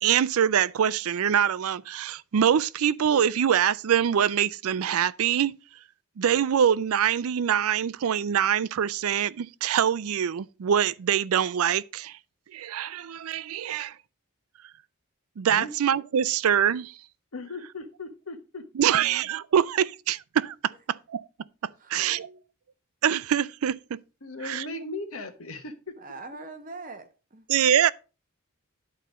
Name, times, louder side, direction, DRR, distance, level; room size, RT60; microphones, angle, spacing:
voice 1, 0.0-5.6 6.2-12.2 12.5-13.9 15.4-16.9 18.8-21.2 21.9-22.3 23.0-24.0 24.4-24.6 27.5-27.9, right 9 dB, 80° right, 0.4 m, -24 dB
voice 2, 17.3-18.6 24.2-25.7, left 2 dB, 75° left, 1.4 m, -37 dB
voice 3, 21.8-22.4 26.0-27.4, right 3 dB, 40° right, 1.0 m, -43 dB
11.0 x 4.3 x 5.1 m
head